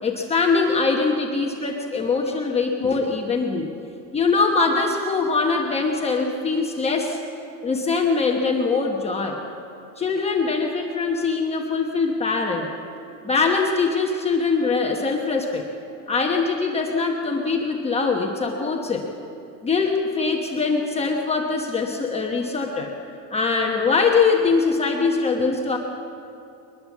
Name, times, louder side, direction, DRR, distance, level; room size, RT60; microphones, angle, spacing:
voice 1, 0.0-3.7 4.1-7.2 7.6-9.4 10.0-12.7 13.2-15.7 16.1-19.0 19.6-22.9 23.3-25.8, left 4 dB, 10° left, 0 dB, 1.1 m, -22 dB
22.5 x 20.5 x 7.3 m, 2.7 s
supercardioid pair, 160°, 50 cm